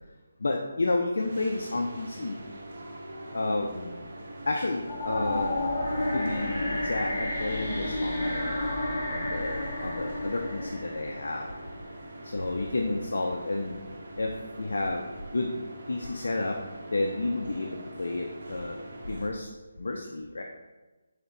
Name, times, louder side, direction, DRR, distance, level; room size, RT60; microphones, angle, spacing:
voice 1, 0.4-2.4 3.3-4.1 4.5-5.6 6.1-11.5 12.2-13.8 14.2-14.3 14.6-15.1 15.3-15.5 15.9-16.6 16.9-19.5 19.8-20.4, left 2 dB, 70° left, 2 dB, 0.4 m, -31 dB
sound 1, 1.2-19.3, right 1 dB, 50° right, 0.7 m, -44 dB
sound 2, 4.9-12.0, left 1 dB, 30° left, 1.1 m, -31 dB
4.4 x 2.7 x 2.5 m, 1.2 s
hypercardioid pair, 170°, 0 cm